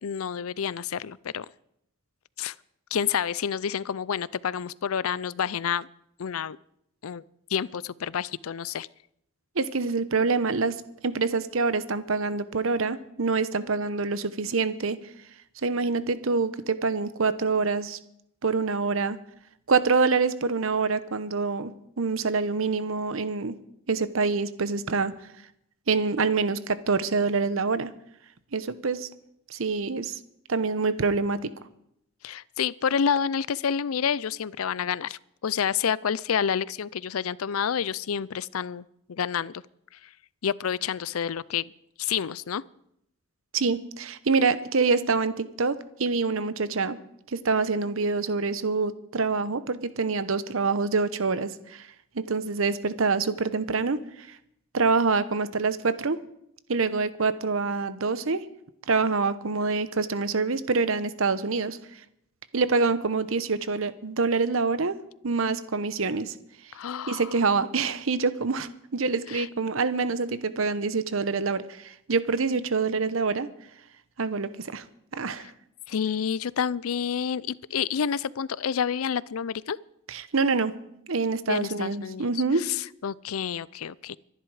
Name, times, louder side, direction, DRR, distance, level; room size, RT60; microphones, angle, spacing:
voice 1, 0.0-1.5 2.4-2.5 2.9-5.9 6.2-6.6 7.0-7.2 7.5-8.9 32.2-39.5 40.4-41.7 42.0-42.6 66.7-67.3 69.3-69.5 75.9-79.8 81.5-82.3 82.6-84.2, left 7 dB, 85° left, 21 dB, 0.5 m, -29 dB
voice 2, 9.6-10.8 11.0-15.0 15.6-18.0 18.4-19.2 19.7-21.7 22.0-23.5 23.9-25.1 25.9-27.9 28.5-29.1 29.5-30.2 30.5-31.5 43.5-47.0 47.3-51.9 52.1-54.4 54.7-56.2 56.7-58.4 58.9-61.8 62.5-65.0 65.2-66.3 67.1-73.5 74.2-74.8 75.1-75.5 80.1-80.7 81.1-82.6, right 4 dB, 70° right, 14 dB, 0.9 m, -26 dB
24.5 x 11.0 x 4.9 m, 0.76 s
head